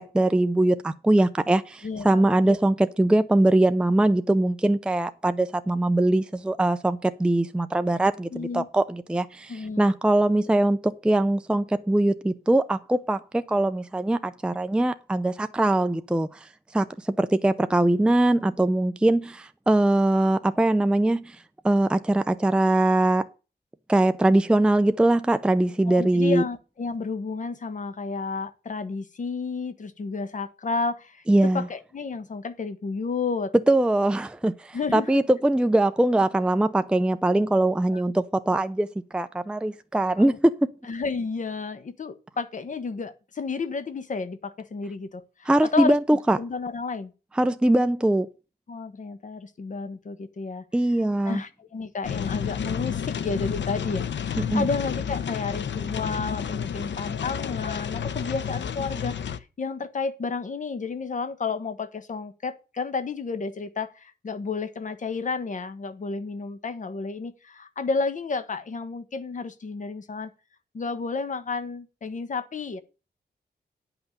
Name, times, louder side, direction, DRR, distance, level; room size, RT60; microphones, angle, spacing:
voice 1, 0.0-21.4 21.6-23.3 23.9-26.4 31.3-31.7 33.7-38.9 39.1-40.7 45.5-46.4 47.4-48.3 50.7-51.4 54.4-54.7, right 1 dB, 5° right, 0.5 m, -22 dB
voice 2, 1.8-2.6 8.3-8.7 9.5-9.9 25.9-33.5 34.7-35.2 37.9-38.0 40.2-40.4 40.8-46.0 46.4-47.1 48.7-50.6 51.2-70.3 70.7-72.8, left 4 dB, 45° left, 1.3 m, -31 dB
sound 1, 52.0-59.4, left 8 dB, 90° left, 0.8 m, -30 dB
10.0 x 5.9 x 6.7 m
wide cardioid pair, 175°, 18 cm